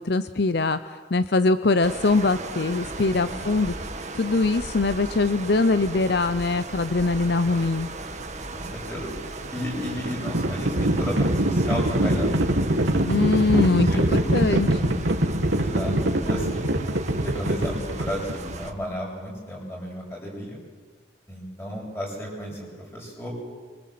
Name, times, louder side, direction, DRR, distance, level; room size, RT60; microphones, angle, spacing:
voice 1, 0.0-3.7 4.1-7.9 13.0-15.0, left 3 dB, 55° left, 12 dB, 0.7 m, -22 dB
sound 1, 1.8-18.7, right 2 dB, 35° right, 1.8 m, -36 dB
voice 2, 3.1-3.5 7.4-7.6 8.5-9.1 9.5-12.3 13.5-14.0 15.6-16.7 17.2-20.6 21.3-22.7 22.9-23.3, equal, 10° left, -2 dB, 7.7 m, -33 dB
Livestock farm animals working animals, 9.6-18.5, right 1 dB, 75° right, 2.2 m, -24 dB
25.0 x 24.5 x 7.7 m, 1.5 s
head